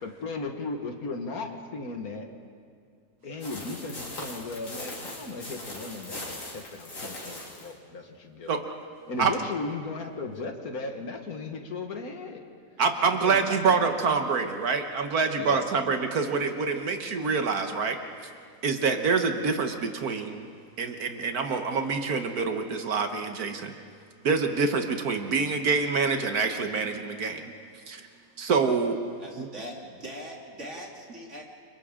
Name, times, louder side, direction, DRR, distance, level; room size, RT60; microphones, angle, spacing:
voice 1, 0.0-2.3 3.2-8.5 9.1-12.4 13.1-13.9 15.4-15.6, left 3 dB, 65° left, 4 dB, 1.9 m, -36 dB
sound 1, 3.4-7.7, left 1 dB, 85° left, 3.4 m, -40 dB
voice 2, 12.8-18.3 18.6-20.5 20.8-23.7 24.2-27.5 27.9-28.1 28.4-29.0 29.4-29.5, right 5 dB, 65° right, 6 dB, 1.6 m, -26 dB
voice 3, 29.2-31.4, equal, 45° right, -1 dB, 3.1 m, -41 dB
29.5 x 25.0 x 3.7 m, 2.1 s
omnidirectional pair, 1.7 m